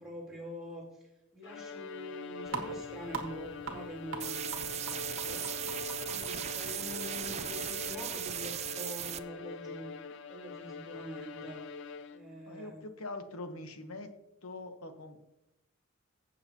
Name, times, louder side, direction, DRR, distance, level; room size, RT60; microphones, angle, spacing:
voice 1, 0.0-5.5 6.0-9.9 10.3-11.6 12.1-12.8, equal, ahead, -6 dB, 3.6 m, -45 dB
Bowed string instrument, 1.4-12.5, left 5 dB, 55° left, 0.5 m, -44 dB
sound 1, 2.5-8.6, right 4 dB, 60° right, 1.5 m, -45 dB
sound 2, 4.2-9.2, right 11 dB, 30° right, 0.3 m, -37 dB
voice 2, 12.5-14.1 14.4-15.2, left 2 dB, 80° left, 7 dB, 1.1 m, -43 dB
16.0 x 6.8 x 2.9 m, 0.88 s
head